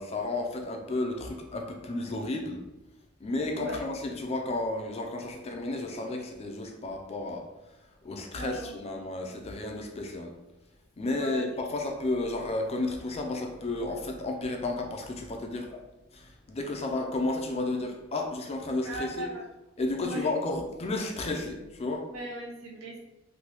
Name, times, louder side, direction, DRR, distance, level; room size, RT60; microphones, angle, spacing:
voice 1, 0.0-2.6 3.2-7.5 8.0-10.3 11.0-15.8 16.1-19.3 19.8-22.1, left 2 dB, 30° left, 3 dB, 0.3 m, -32 dB
voice 2, 8.3-8.8 11.1-11.4 18.8-19.4 20.0-20.3 22.1-23.0, right 1 dB, 85° right, -3 dB, 0.9 m, -38 dB
3.2 x 2.2 x 2.9 m, 0.95 s
head